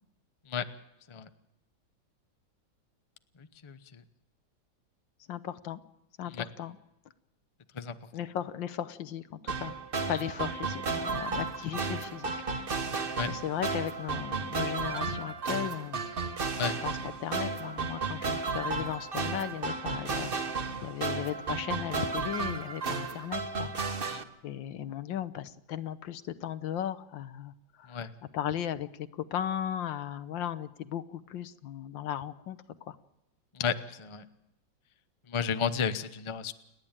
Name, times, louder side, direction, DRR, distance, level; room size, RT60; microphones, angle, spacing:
voice 1, 5.3-5.8 6.2-6.8 8.1-9.7 10.1-12.5 13.3-16.0 16.8-23.7 24.4-28.0 28.3-33.0, left 10 dB, 70° left, 13 dB, 1.6 m, -36 dB
sound 1, 9.5-24.2, right 4 dB, 35° right, 1.1 m, -33 dB
voice 2, 33.6-34.2 35.3-36.5, left 7 dB, 40° left, 10 dB, 0.4 m, -32 dB
29.5 x 10.5 x 8.9 m, 0.87 s
omnidirectional pair, 2.2 m